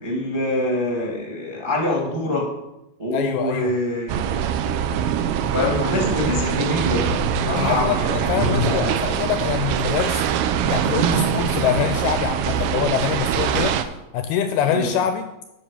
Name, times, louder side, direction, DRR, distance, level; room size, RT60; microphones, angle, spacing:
voice 1, 0.0-2.5 3.0-4.2 5.5-9.0 14.7-14.9, left 1 dB, 20° right, -1 dB, 0.7 m, -25 dB
voice 2, 3.1-3.7 7.6-10.2 10.6-13.8 14.1-15.3, left 9 dB, 80° left, 8 dB, 2.3 m, -24 dB
sound 1, 4.1-13.8, right 9 dB, 80° right, 2.4 m, -23 dB
sound 2, 5.9-13.5, left 2 dB, 45° right, 3.2 m, -35 dB
12.5 x 5.8 x 7.0 m, 0.93 s
omnidirectional pair, 5.0 m